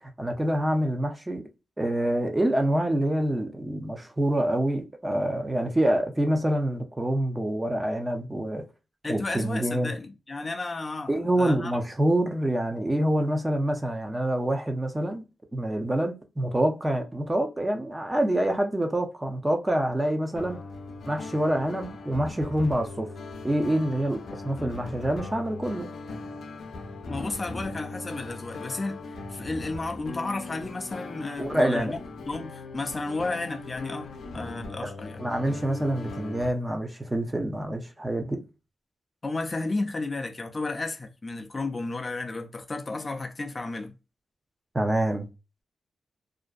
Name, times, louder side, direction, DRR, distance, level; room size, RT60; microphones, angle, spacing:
voice 1, 0.0-1.4 1.8-8.7 9.1-9.9 11.1-15.2 15.5-20.6 21.1-23.1 23.4-25.9 31.4-31.9 34.8-34.9 35.2-38.4 44.7-45.3, right 1 dB, 20° right, 0.6 m, -26 dB
voice 2, 9.0-11.7 27.1-29.0 29.3-32.0 32.3-35.2 39.2-43.9, left 3 dB, 35° left, 0.4 m, -33 dB
sound 1, 20.3-36.5, left 3 dB, 85° left, 0.5 m, -39 dB
2.5 x 2.1 x 2.4 m
cardioid pair, 75°, 0 cm